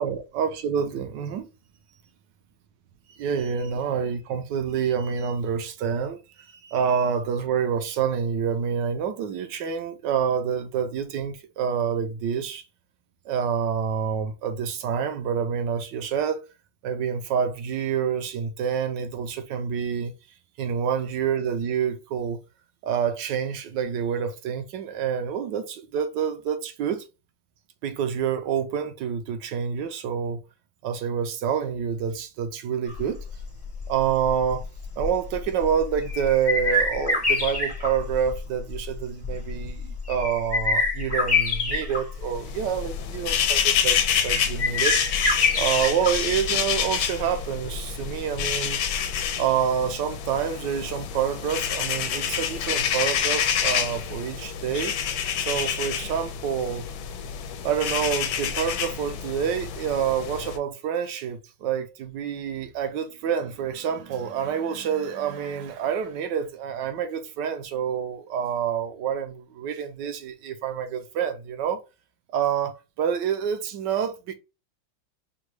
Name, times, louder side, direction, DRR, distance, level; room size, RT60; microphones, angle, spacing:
voice 1, 0.0-1.5 3.1-6.2 6.5-12.6 13.2-16.4 16.8-20.1 20.6-22.4 22.8-27.0 27.8-30.4 30.8-33.2 33.9-34.7 35.0-44.0 44.2-45.0 45.5-48.8 49.4-54.9 55.4-56.9 57.6-71.8 72.3-74.3, right 7 dB, 70° right, 1.2 m, -27 dB
sound 1, 32.9-49.3, left 3 dB, 20° left, 0.8 m, -28 dB
sound 2, 42.3-60.6, left 8 dB, 85° left, 1.4 m, -28 dB
6.3 x 2.3 x 3.1 m
omnidirectional pair, 2.2 m